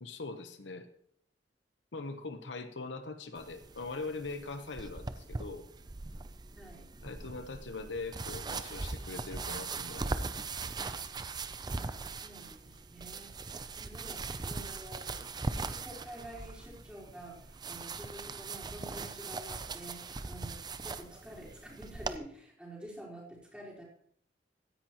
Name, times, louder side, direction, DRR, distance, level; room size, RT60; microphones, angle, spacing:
voice 1, 0.0-0.9 1.9-5.7 7.0-10.3 10.6-10.7, left 3 dB, 90° left, 9 dB, 1.0 m, -42 dB
sound 1, 3.4-22.2, right 3 dB, 25° right, 0.5 m, -40 dB
voice 2, 6.5-6.9 11.6-15.3 15.6-23.8, right 1 dB, 5° right, -6 dB, 4.4 m, -49 dB
16.0 x 10.5 x 3.0 m, 0.66 s
head